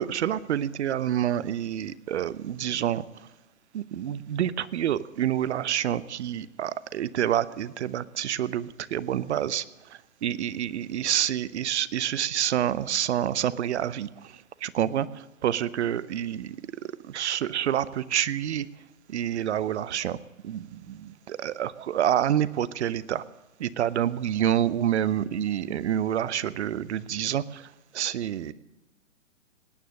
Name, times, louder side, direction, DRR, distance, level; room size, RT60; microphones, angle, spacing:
voice 1, 0.0-3.0 3.7-9.6 9.9-16.6 16.8-18.7 19.1-20.2 20.4-23.2 23.6-28.5, right 10 dB, 55° right, 18 dB, 0.7 m, -28 dB
18.5 x 9.6 x 6.4 m, 1.0 s
hypercardioid pair, 130°, 40 cm